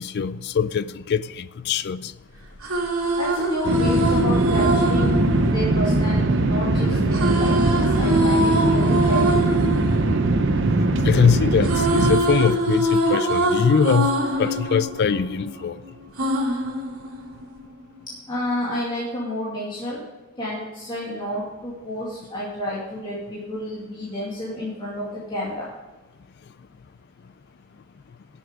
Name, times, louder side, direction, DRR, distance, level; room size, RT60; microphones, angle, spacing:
voice 1, 0.0-2.1 11.0-14.1 14.4-15.8, left 6 dB, 50° left, 0.3 m, -22 dB
sound 1, 2.4-6.5 7.1-11.2 11.4-15.7 16.2-17.6, right 1 dB, 85° right, 2.6 m, -24 dB
voice 2, 3.2-5.2 5.5-9.4 18.3-20.0 20.4-25.7, left 1 dB, 20° left, 2.3 m, -30 dB
sound 2, 3.6-12.2, right 2 dB, 60° right, 0.8 m, -21 dB
10.5 x 7.1 x 5.0 m
head